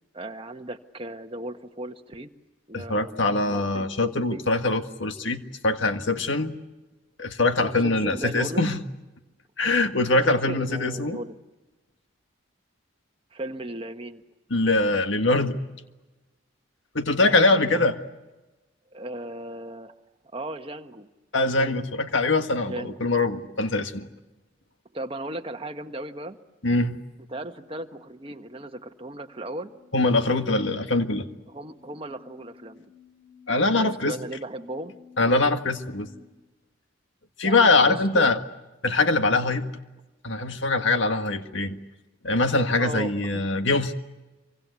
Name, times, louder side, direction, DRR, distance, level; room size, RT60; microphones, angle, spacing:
voice 1, 0.1-2.3 2.7-4.4 7.8-8.7 10.1-11.3 13.3-14.2 17.2-17.8 18.9-19.9 20.3-21.1 21.5-21.8 22.6-23.0 24.9-26.4 27.3-29.7 31.5-32.8 33.8-34.9 37.4-38.3 42.7-43.4, right 1 dB, 25° right, 6 dB, 1.3 m, -37 dB
voice 2, 2.7-6.5 7.2-8.8 9.6-11.2 14.5-15.6 16.9-17.9 21.3-24.1 26.6-27.0 29.9-31.3 33.5-34.1 35.2-36.1 37.4-38.4 38.8-39.7 40.2-41.8 42.2-43.9, left 2 dB, 65° left, 7 dB, 1.7 m, -23 dB
sound 1, 28.1-36.2, left 6 dB, 85° left, 6.3 m, -55 dB
26.5 x 24.5 x 8.3 m, 1.1 s
head